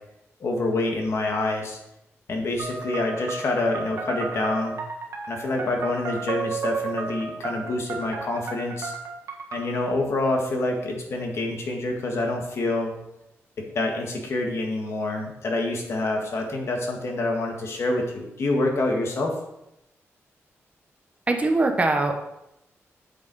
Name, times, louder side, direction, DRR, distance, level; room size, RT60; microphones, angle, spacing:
voice 1, 0.4-1.8 2.3-4.8 5.3-8.9 9.5-12.9 13.6-19.4, left 2 dB, 60° left, 1 dB, 1.8 m, -27 dB
sound 1, 2.6-9.8, right 4 dB, 80° right, 1.6 m, -33 dB
voice 2, 21.3-22.1, right 2 dB, 25° right, 5 dB, 1.0 m, -21 dB
8.5 x 7.2 x 4.2 m, 0.86 s
wide cardioid pair, 130°, 5 cm